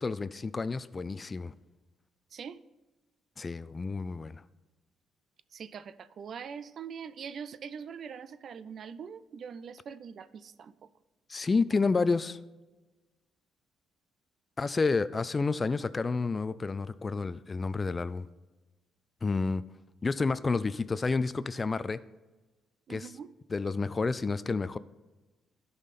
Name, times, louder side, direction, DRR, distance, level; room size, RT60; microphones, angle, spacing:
voice 1, 0.0-1.5 3.4-4.4 11.3-12.4 14.6-18.3 19.2-19.6 20.0-22.0 22.9-23.1 23.5-24.8, left 4 dB, 30° left, 0.4 m, -30 dB
voice 2, 2.3-2.6 5.5-10.9 22.9-23.3, right 7 dB, 55° right, 0.4 m, -43 dB
12.0 x 5.6 x 4.2 m
cardioid pair, 90°, 0 cm